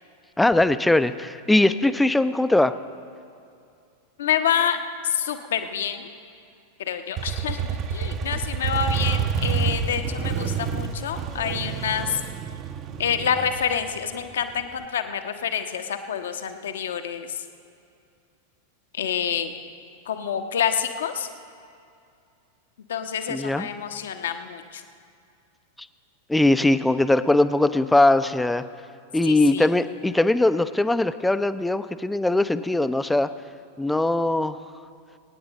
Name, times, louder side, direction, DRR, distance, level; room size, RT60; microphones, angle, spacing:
voice 1, 0.4-2.7 23.3-23.7 26.3-28.6 29.1-33.3 33.8-34.6, left 2 dB, 5° left, 13 dB, 0.5 m, -20 dB
voice 2, 4.2-6.1 6.8-12.2 13.0-17.4 18.9-19.6 20.1-21.3 22.9-24.8 29.3-29.7, left 8 dB, 60° left, 8 dB, 0.9 m, -27 dB
Motorcycle, 7.2-14.8, right 6 dB, 35° right, 0.7 m, -28 dB
24.0 x 9.6 x 4.0 m, 2.5 s
figure-of-eight pair, 90°, 0 cm